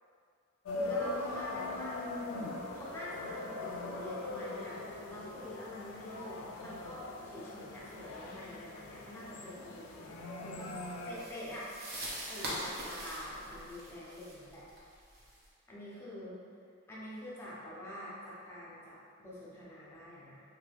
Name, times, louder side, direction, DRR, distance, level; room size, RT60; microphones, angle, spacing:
sound 1, 0.7-11.1, left 2 dB, 75° left, 0.4 m, -41 dB
voice 1, 0.7-2.0 2.7-4.8 5.1-10.7 11.1-11.7 12.3-14.6 15.7-16.4 16.9-20.4, left 1 dB, 10° left, -8 dB, 0.6 m, -46 dB
sound 2, 10.6-15.5, right 1 dB, 50° right, 0.6 m, -43 dB
2.8 x 2.2 x 3.3 m, 2.2 s
head